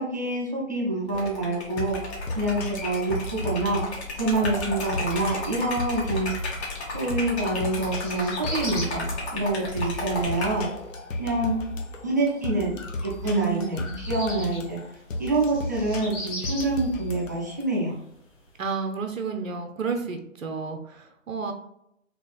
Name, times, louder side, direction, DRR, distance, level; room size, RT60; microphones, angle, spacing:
voice 1, 0.0-2.1 2.3-6.3 6.9-10.7 11.2-11.6 12.0-13.8 14.1-14.8 15.2-17.9, right 2 dB, 15° right, -5 dB, 0.4 m, -27 dB
sound 1, 1.1-17.6, left 1 dB, 75° left, 0.7 m, -35 dB
Liquid, 1.1-10.6, left 2 dB, 55° left, 1.4 m, -34 dB
sound 2, 3.9-18.7, left 1 dB, 25° left, 1.1 m, -42 dB
voice 2, 13.2-14.0 18.6-21.5, right 5 dB, 85° right, 5 dB, 0.7 m, -31 dB
4.1 x 2.9 x 2.3 m, 0.77 s
figure-of-eight pair, 130°, 39 cm